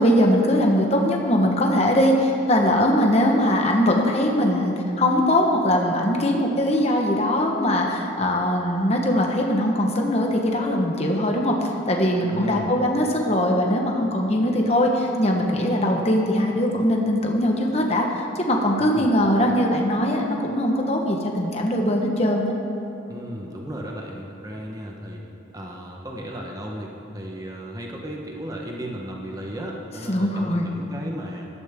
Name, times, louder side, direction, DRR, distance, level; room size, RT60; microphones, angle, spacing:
voice 1, 0.0-22.5 30.1-30.7, left 1 dB, 30° left, 1 dB, 1.2 m, -21 dB
voice 2, 12.3-12.8 18.8-19.2 23.1-25.2 25.5-31.5, equal, 20° right, -1 dB, 1.1 m, -35 dB
15.5 x 12.5 x 3.7 m, 3.0 s
head